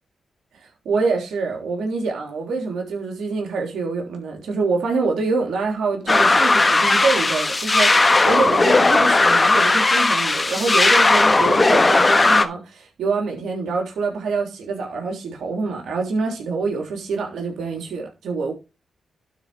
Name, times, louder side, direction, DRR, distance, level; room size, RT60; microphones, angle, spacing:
voice 1, 0.8-18.5, right 4 dB, 80° right, 3.3 m, -25 dB
sound 1, 6.1-12.4, left 2 dB, 30° left, 1.3 m, -16 dB
12.0 x 4.8 x 4.7 m
cardioid pair, 55°, 0 cm